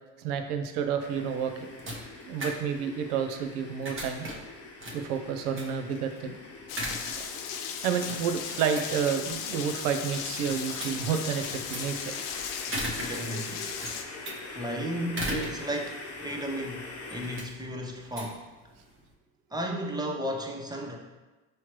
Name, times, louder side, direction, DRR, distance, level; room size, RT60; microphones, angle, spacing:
voice 1, 0.2-1.5 2.2-4.3 4.9-6.3 7.2-7.3 7.8-12.2, right 7 dB, 75° right, 7 dB, 0.7 m, -30 dB
sound 1, 1.0-17.4, left 3 dB, 35° left, 0.9 m, -44 dB
sound 2, 1.2-19.1, right 1 dB, 25° right, 1.0 m, -40 dB
Rain, 6.7-14.0, left 7 dB, 80° left, 0.6 m, -37 dB
voice 2, 13.0-13.7 14.5-18.4 19.5-21.0, equal, 10° right, 1 dB, 0.6 m, -34 dB
5.6 x 3.1 x 3.0 m, 1.2 s
hypercardioid pair, 75°, 45 cm